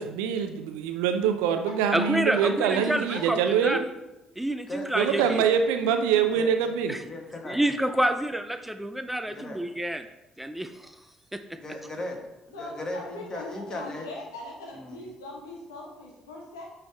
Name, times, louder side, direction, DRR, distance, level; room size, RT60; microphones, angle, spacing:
voice 1, 0.0-3.8 4.9-6.9, right 7 dB, 75° right, 7 dB, 0.5 m, -24 dB
voice 2, 1.9-3.8 4.4-5.4 6.9-7.0 7.4-10.1 10.4-10.9 11.3-11.4, right 1 dB, 5° right, 8 dB, 0.4 m, -28 dB
voice 3, 2.7-3.2 12.5-16.6, left 2 dB, 85° left, -1 dB, 1.3 m, -41 dB
voice 4, 4.7-5.4 6.3-6.5 7.0-7.6 9.3-9.6 11.6-12.2 12.5-14.1 14.7-15.1, left 1 dB, 30° left, 2 dB, 1.5 m, -37 dB
8.8 x 3.5 x 3.4 m, 0.97 s
hypercardioid pair, 50°, 2 cm